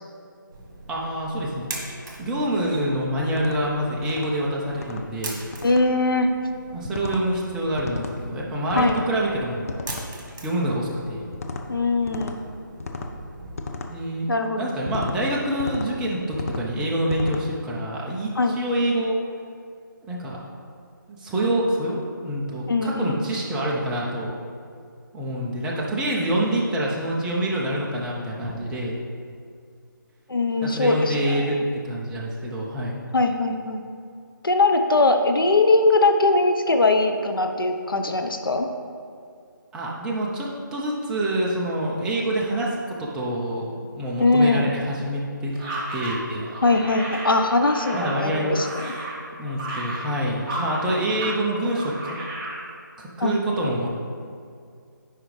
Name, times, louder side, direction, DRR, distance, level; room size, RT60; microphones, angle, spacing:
sound 1, 0.5-13.6, right 2 dB, 55° right, 1.5 m, -42 dB
voice 1, 0.9-1.7 2.2-5.4 6.7-9.7 10.4-11.3 13.9-14.3 14.6-19.2 20.1-20.4 21.1-24.3 25.1-29.0 30.6-33.0 39.7-43.7 43.9-45.5 45.9-46.5 47.9-48.6 49.4-52.1 53.0-53.9, right 1 dB, 5° right, -4 dB, 0.5 m, -26 dB
sound 2, 3.4-3.6 4.0-4.3 4.8-5.0 5.5-5.8 6.8-7.2 7.8-8.2 8.7-9.1 9.7-10.1 11.3-11.6 12.1-12.4 12.8-13.1 13.6-13.9 14.9-15.2 15.6-15.9 16.3-16.7 17.1-17.4, left 3 dB, 40° left, 0.6 m, -33 dB
voice 2, 5.6-6.3 8.7-8.9 11.7-12.4 14.3-14.7 18.3-18.6 22.7-23.2 30.3-31.5 33.1-33.8 34.4-38.7 44.2-44.7 46.6-48.9 53.2-53.4, left 2 dB, 85° left, 5 dB, 0.8 m, -21 dB
sound 3, 45.5-51.4 51.6-52.6, right 2 dB, 20° right, 1.2 m, -33 dB
10.0 x 4.9 x 3.2 m, 2.3 s
figure-of-eight pair, 160°, 11 cm